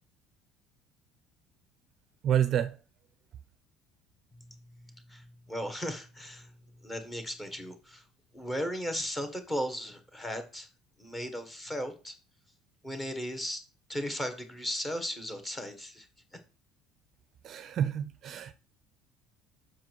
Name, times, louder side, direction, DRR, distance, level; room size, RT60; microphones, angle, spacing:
voice 1, 2.2-2.8 17.4-18.5, right 9 dB, 35° right, 0.6 m, -28 dB
voice 2, 4.4-6.5 6.8-8.0 8.3-10.7 11.0-12.1 12.8-13.6 13.9-16.1, equal, 10° left, 1.5 m, -36 dB
7.5 x 6.2 x 4.7 m
cardioid pair, 170°, 0 cm